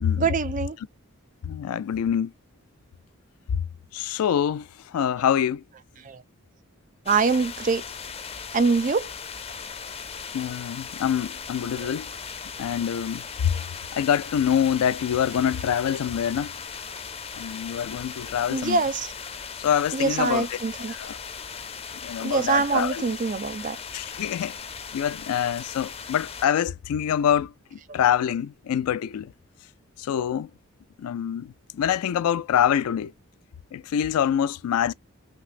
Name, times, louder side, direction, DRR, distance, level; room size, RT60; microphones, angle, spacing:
voice 1, 0.2-0.8 6.1-6.2 7.1-7.8 8.5-9.1 18.5-19.1 19.9-21.0 22.2-23.8, right 4 dB, 35° right, 0.4 m, -24 dB
voice 2, 1.4-2.3 3.9-4.7 4.9-5.6 10.3-12.1 12.6-13.5 13.9-16.5 17.4-18.8 19.6-20.6 20.9-21.2 22.0-23.0 23.9-24.6 24.9-29.3 30.0-30.5 31.0-33.1 33.7-34.9, left 9 dB, 85° left, 0.3 m, -25 dB
sound 1, 7.1-26.5, left 6 dB, 25° left, 0.5 m, -38 dB
5.7 x 2.0 x 2.4 m
head